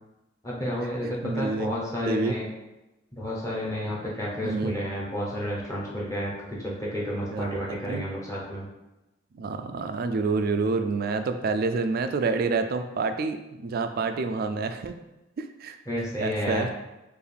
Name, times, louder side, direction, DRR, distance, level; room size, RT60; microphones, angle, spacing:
voice 1, 0.4-2.5 3.1-8.6 15.9-16.7, equal, 15° left, -5 dB, 0.8 m, -31 dB
voice 2, 1.0-1.7 2.1-2.4 4.4-4.8 7.3-8.0 9.3-14.9 15.4-15.8 16.2-16.7, right 4 dB, 50° right, 8 dB, 0.3 m, -28 dB
4.6 x 2.5 x 3.3 m, 1.0 s
head